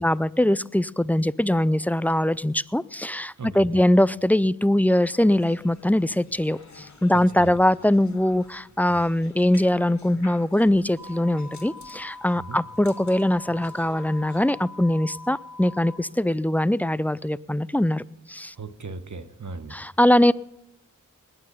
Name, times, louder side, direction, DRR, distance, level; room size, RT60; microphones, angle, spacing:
voice 1, 0.0-18.0 18.3-18.5 19.7-20.3, left 1 dB, 5° left, 19 dB, 0.4 m, -22 dB
voice 2, 3.4-3.8 7.1-7.6 8.9-9.0 12.3-12.6 18.5-19.8, right 3 dB, 60° right, 10 dB, 1.2 m, -37 dB
sound 1, 4.9-14.5, left 3 dB, 60° left, 2.1 m, -50 dB
sound 2, 11.0-16.0, left 3 dB, 80° right, 2.0 m, -43 dB
20.0 x 9.0 x 5.5 m, 0.91 s
cardioid pair, 40°, 33 cm